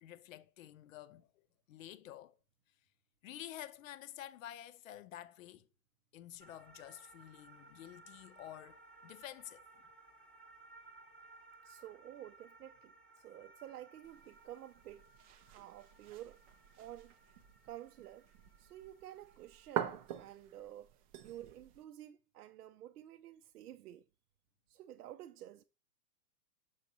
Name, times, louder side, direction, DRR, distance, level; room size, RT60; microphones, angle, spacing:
voice 1, 0.0-2.4 3.2-5.7 6.1-9.7, left 12 dB, 55° left, 0.7 m, -50 dB
sound 1, 6.4-20.3, right 3 dB, ahead, 0.8 m, -61 dB
voice 2, 11.6-15.1 15.5-16.4 16.8-17.1 17.6-18.3 18.6-24.1 24.7-25.6, right 12 dB, 75° right, 0.6 m, -51 dB
sound 2, 14.0-21.8, right 10 dB, 25° right, 0.4 m, -46 dB
6.7 x 6.4 x 2.8 m
hypercardioid pair, 125°, 47 cm